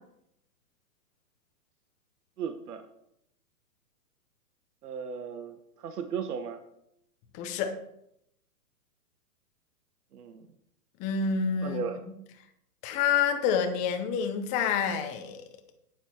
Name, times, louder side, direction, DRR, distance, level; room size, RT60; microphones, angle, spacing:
voice 1, 2.4-2.8 4.8-6.6 10.1-10.5 11.6-12.0, right 6 dB, 70° right, 7 dB, 1.3 m, -36 dB
voice 2, 7.3-7.7 11.0-11.8 12.8-15.4, left 7 dB, 15° left, 6 dB, 0.7 m, -28 dB
9.3 x 9.0 x 4.5 m, 0.78 s
hypercardioid pair, 150°, 48 cm